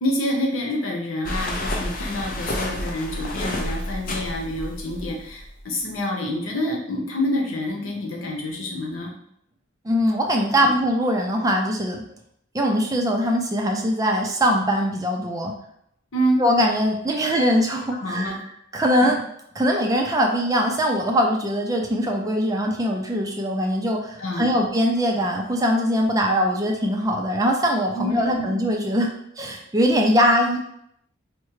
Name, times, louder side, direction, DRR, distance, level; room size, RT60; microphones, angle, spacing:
voice 1, 0.0-9.1 10.6-10.7 16.1-16.4 17.9-18.4 19.0-19.1 24.2-24.6 27.9-28.5, equal, 80° left, 0 dB, 0.9 m, -27 dB
sound 1, 1.2-5.6, left 1 dB, 45° left, 0.5 m, -30 dB
voice 2, 9.8-12.0 12.5-15.5 16.4-18.4 18.7-19.2 19.6-30.6, equal, 15° right, 1 dB, 0.4 m, -22 dB
4.6 x 2.1 x 3.1 m, 0.73 s
head